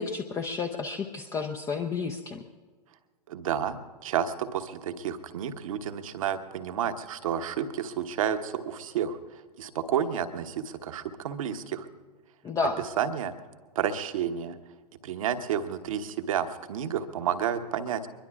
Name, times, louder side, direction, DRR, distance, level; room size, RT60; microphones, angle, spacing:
voice 1, 0.0-2.4 12.4-12.8, left 5 dB, 15° left, 4 dB, 0.7 m, -31 dB
voice 2, 3.3-9.2 9.6-11.9 13.0-13.3 13.7-14.6 15.0-18.0, right 8 dB, 55° right, 9 dB, 1.1 m, -30 dB
23.5 x 21.5 x 2.4 m, 1.5 s
figure-of-eight pair, 105°, 21 cm